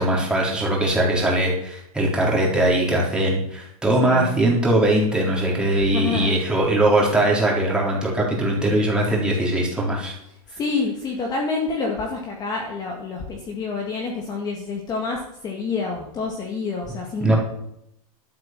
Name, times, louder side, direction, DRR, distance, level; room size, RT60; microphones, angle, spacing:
voice 1, 0.0-10.2 17.2-17.4, right 1 dB, 5° right, -3 dB, 4.0 m, -20 dB
voice 2, 4.0-4.4 5.8-6.4 10.5-17.3, left 4 dB, 20° left, 0 dB, 2.0 m, -28 dB
12.5 x 7.8 x 7.6 m, 0.77 s
supercardioid pair, 150°, 20 cm